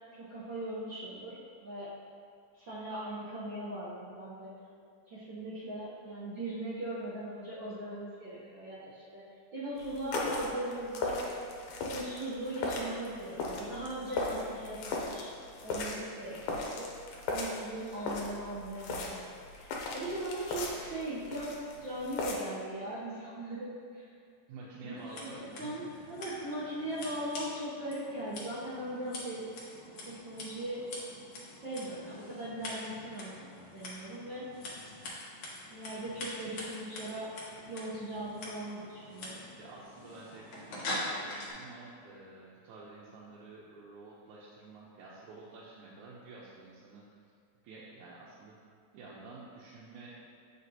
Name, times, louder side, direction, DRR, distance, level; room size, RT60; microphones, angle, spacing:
voice 1, 0.1-1.9 2.6-4.5 5.1-9.2 9.5-11.3 11.8-15.3 15.6-16.9 17.3-19.2 19.5-21.5 21.8-24.0 24.8-29.4 30.0-30.8 31.6-34.5 35.7-37.3 37.6-39.4, right 1 dB, 60° right, -10 dB, 1.2 m, -39 dB
sound 1, 9.8-22.4, left 2 dB, 85° left, 2.3 m, -38 dB
voice 2, 24.5-25.9 39.5-47.2 47.6-48.6 48.9-50.2, right 3 dB, 90° right, -6 dB, 2.2 m, -50 dB
Scissors, 25.0-41.5, left 1 dB, 65° left, 2.0 m, -44 dB
8.1 x 5.0 x 2.8 m, 2.3 s
omnidirectional pair, 3.3 m